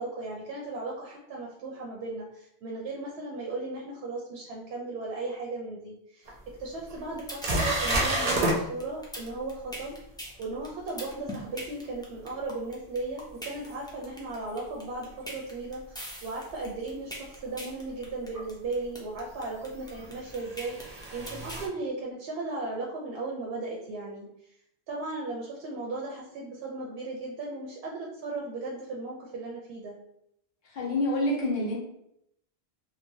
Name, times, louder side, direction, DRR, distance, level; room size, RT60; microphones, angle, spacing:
voice 1, 0.0-6.3 6.6-10.0 10.4-24.3 24.9-30.0, right 2 dB, 80° right, -3 dB, 0.8 m, -36 dB
sound 1, 6.3-6.4 6.9-7.0 7.4-8.6 13.7-13.8 16.6-16.7 18.3-18.4 19.8-21.7, right 1 dB, 50° right, 0.5 m, -29 dB
sound 2, 7.2-21.7, equal, 5° left, 0.3 m, -41 dB
voice 2, 30.7-31.8, left 1 dB, 65° left, -4 dB, 1.0 m, -27 dB
3.0 x 2.3 x 2.6 m, 0.76 s
omnidirectional pair, 1.1 m